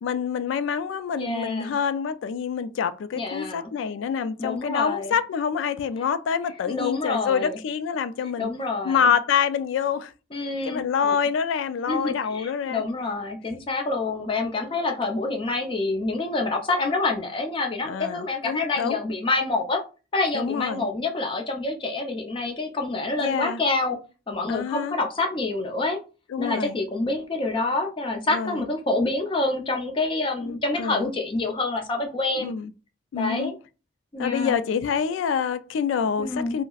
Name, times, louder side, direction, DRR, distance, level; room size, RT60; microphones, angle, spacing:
voice 1, 0.0-8.5 8.8-10.1 10.6-12.8 17.9-19.0 20.3-20.8 23.2-23.6 24.5-25.0 26.3-26.8 28.3-28.7 30.4-31.1 32.4-32.7 33.1-33.5 34.2-36.6, left 7 dB, 90° left, 0.3 m, -26 dB
voice 2, 1.1-1.7 3.2-3.7 4.4-5.1 6.7-7.6 8.4-9.0 10.3-11.1 11.9-19.8 20.1-24.0 24.3-26.0 26.4-32.5 33.2-33.5 34.1-34.6 36.2-36.6, left 3 dB, 25° left, 0.5 m, -27 dB
3.9 x 2.0 x 2.3 m
head